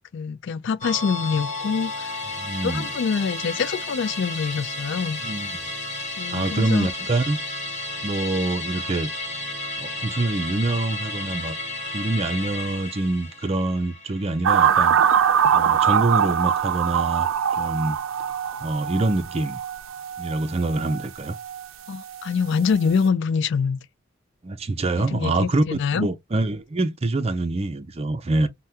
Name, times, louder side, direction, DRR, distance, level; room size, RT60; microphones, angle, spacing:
voice 1, 0.1-2.1 2.6-5.2 6.2-6.9 21.9-23.8 24.9-26.1, left 5 dB, 60° left, 0.3 m, -25 dB
Musical instrument, 0.8-15.5 15.8-15.9, left 2 dB, 35° left, 1.6 m, -33 dB
voice 2, 2.4-2.9 5.2-5.6 6.3-7.4 8.0-9.1 9.8-11.5 11.9-15.0 15.5-17.3 17.6-18.0 18.6-19.6 20.2-21.4 24.4-28.5, right 2 dB, 30° right, 0.5 m, -25 dB
sound 1, 14.4-21.7 22.0-22.3, right 8 dB, 80° right, 0.4 m, -22 dB
3.4 x 2.2 x 2.7 m
head